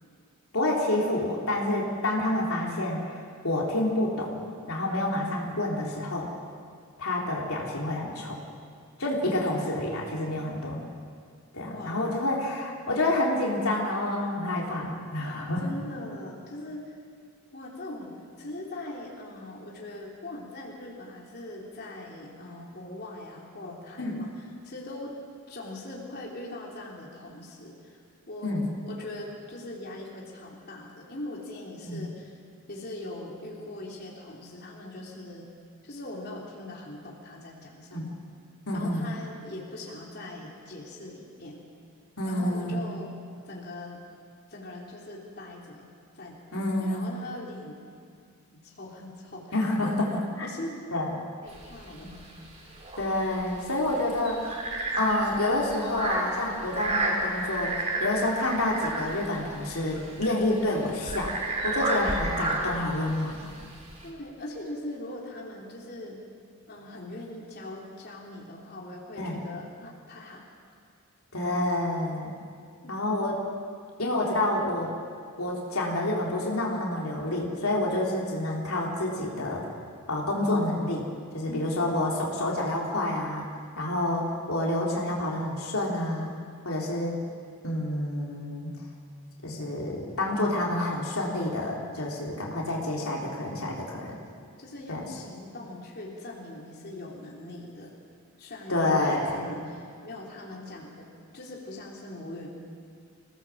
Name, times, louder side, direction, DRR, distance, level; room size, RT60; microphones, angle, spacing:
voice 1, 0.5-4.4 4.7-6.3 7.0-8.4 9.0-10.8 11.5-15.6 24.0-24.2 28.4-28.7 31.8-32.0 37.9-38.1 38.7-39.1 42.2-42.9 46.5-47.0 49.5-50.1 50.4-50.5 50.9-51.1 53.0-54.6 55.0-61.3 61.6-63.5 69.2-69.4 71.3-72.3 72.9-73.4 74.0-74.9 75.4-79.7 80.1-81.1 81.3-83.5 83.8-86.3 86.6-87.2 87.6-88.7 89.4-94.2 94.9-95.1 98.7-99.4, left 1 dB, 80° left, -3 dB, 3.7 m, -28 dB
voice 2, 10.3-11.1 11.6-12.2 15.6-17.0 17.5-25.2 25.5-28.0 28.3-28.5 28.8-32.4 32.7-35.5 35.8-38.2 38.7-41.6 42.2-43.1 43.4-44.0 44.5-45.9 46.1-46.4 46.6-47.7 48.5-49.5 49.8-50.0 50.4-50.8 51.4-52.1 64.0-66.2 66.7-70.4 72.8-72.9 81.5-81.8 93.1-93.3 94.1-94.2 94.6-97.9 98.4-101.1 101.3-102.5, left 1 dB, 50° left, -3 dB, 3.5 m, -41 dB
sound 1, 51.5-64.1, right 2 dB, 30° right, 4.2 m, -32 dB
26.0 x 17.5 x 7.6 m, 2.2 s
head